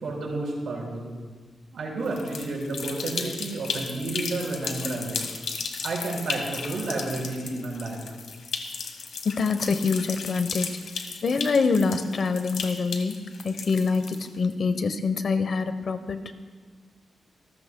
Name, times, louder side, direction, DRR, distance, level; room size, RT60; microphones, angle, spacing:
voice 1, 0.0-1.1 1.7-5.3 5.8-8.0, right 2 dB, 70° right, -3 dB, 5.2 m, -31 dB
sound 1, 2.1-14.5, left 5 dB, 80° left, 1.4 m, -35 dB
voice 2, 9.2-10.7 11.2-13.2 13.4-14.0 14.4-16.3, left 4 dB, 50° left, 10 dB, 0.8 m, -25 dB
27.0 x 14.0 x 2.2 m, 1.4 s
wide cardioid pair, 155°, 0 cm